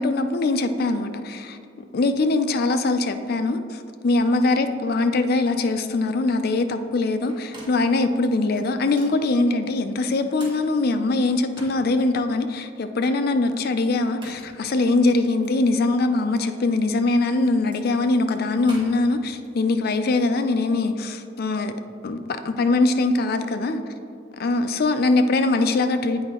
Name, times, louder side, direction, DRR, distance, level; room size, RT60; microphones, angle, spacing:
voice 1, 0.0-1.6 1.9-21.7 22.0-22.2 22.4-23.8 24.4-26.2, left 2 dB, 50° left, 9 dB, 0.4 m, -22 dB
sound 1, 5.0-5.1 5.4-5.7 7.1-8.0 8.6-9.2 10.0-12.1 12.6-12.7 13.9-14.6 15.4-15.6 16.8-19.5, right 1 dB, 25° right, 1.3 m, -46 dB
8.2 x 4.9 x 3.6 m, 2.5 s
head